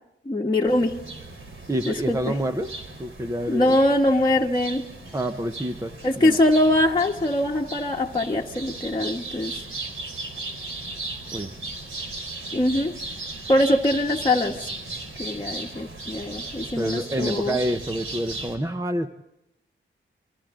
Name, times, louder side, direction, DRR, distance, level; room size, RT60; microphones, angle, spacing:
voice 1, 0.2-0.9 1.9-2.2 3.5-4.8 6.0-9.6 12.5-12.9 13.5-14.5 15.2-17.6, left 1 dB, 20° left, -2 dB, 1.4 m, -22 dB
sound 1, 0.7-18.6, right 2 dB, 75° right, 4.2 m, -37 dB
voice 2, 1.7-2.7 3.0-3.8 5.1-6.4 11.3-11.5 16.7-19.1, right 1 dB, 15° right, 7 dB, 0.9 m, -27 dB
30.0 x 24.5 x 3.8 m, 0.87 s
wide cardioid pair, 110°, 21 cm